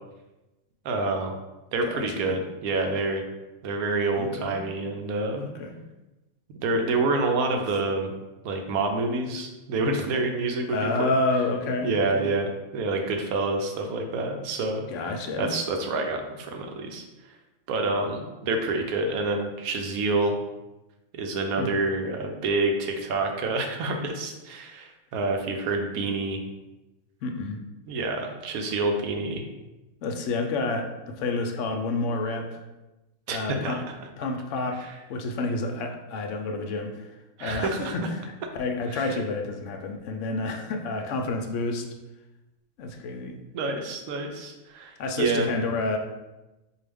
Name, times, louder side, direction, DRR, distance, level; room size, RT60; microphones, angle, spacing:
voice 1, 0.8-1.3 1.7-3.2 3.6-5.5 6.5-8.1 8.4-11.1 11.8-14.8 15.4-17.0 17.7-20.4 21.1-26.4 27.9-29.5 33.3-33.8 34.8-34.9 37.4-38.0 38.9-39.1 43.5-45.5, right 2 dB, 85° right, 3 dB, 1.1 m, -27 dB
voice 2, 1.8-2.4 4.1-4.6 5.6-5.8 10.7-12.3 14.9-15.5 21.6-21.7 27.2-27.6 30.0-32.6 33.3-33.8 34.2-38.1 38.5-41.9 42.8-43.4 45.0-46.0, left 2 dB, 70° left, 4 dB, 0.8 m, -29 dB
4.6 x 2.4 x 3.4 m, 1.0 s
omnidirectional pair, 1.5 m